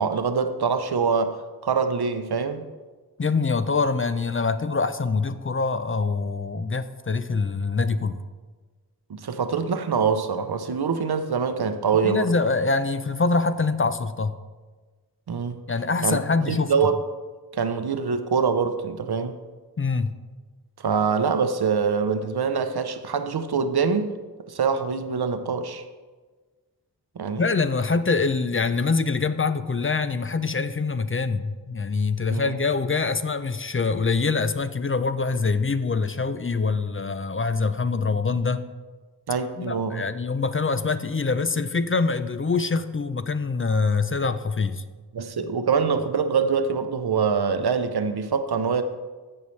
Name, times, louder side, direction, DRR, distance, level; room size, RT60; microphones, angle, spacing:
voice 1, 0.0-1.4 1.6-2.6 9.1-12.3 15.3-15.6 16.0-16.2 16.5-17.0 17.5-19.4 20.8-24.1 24.5-25.8 27.2-27.5 32.3-32.6 39.3-40.0 45.1-48.8, right 5 dB, 75° right, 9 dB, 0.7 m, -24 dB
voice 2, 3.2-8.2 12.0-14.4 15.7-16.7 19.8-20.1 27.4-38.6 39.6-44.8, left 4 dB, 35° left, 11 dB, 0.5 m, -24 dB
15.5 x 5.5 x 3.2 m, 1.4 s
wide cardioid pair, 45°, 39 cm